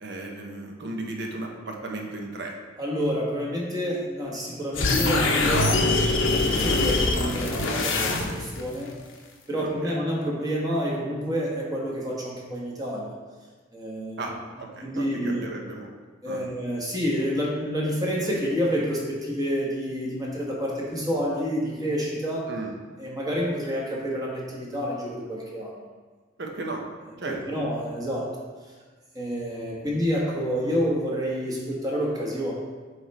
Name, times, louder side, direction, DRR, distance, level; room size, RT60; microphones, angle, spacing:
voice 1, 0.0-2.5 9.6-10.0 14.2-15.9 16.2-16.5 22.5-22.7 26.4-26.8 27.2-27.6, right 2 dB, 60° right, 1 dB, 0.9 m, -35 dB
voice 2, 2.8-8.9 9.5-13.1 13.7-14.3 14.8-15.4 16.2-22.5 23.0-25.8 27.5-28.4 29.1-32.5, equal, 20° right, -4 dB, 1.2 m, -28 dB
sound 1, 4.7-8.6, left 2 dB, 80° left, 0.8 m, -23 dB
7.7 x 3.3 x 4.2 m, 1.4 s
head